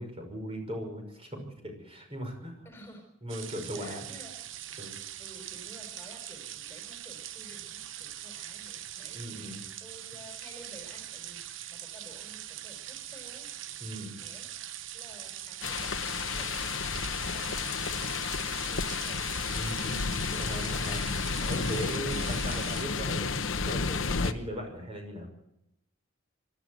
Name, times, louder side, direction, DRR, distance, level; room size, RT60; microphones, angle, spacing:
voice 1, 0.0-2.7 3.2-4.0 4.8-5.0 9.1-9.6 13.8-14.2 19.5-21.0 21.4-25.3, equal, 30° right, 3 dB, 6.0 m, -38 dB
voice 2, 2.6-3.1 3.7-4.3 5.2-13.5 14.2-14.5 14.9-20.0, equal, 10° left, 3 dB, 4.1 m, -53 dB
sound 1, 3.3-22.8, right 11 dB, 65° right, 0.9 m, -42 dB
sound 2, 15.6-24.3, left 5 dB, 70° left, 1.0 m, -31 dB
25.0 x 13.0 x 8.0 m, 0.80 s
head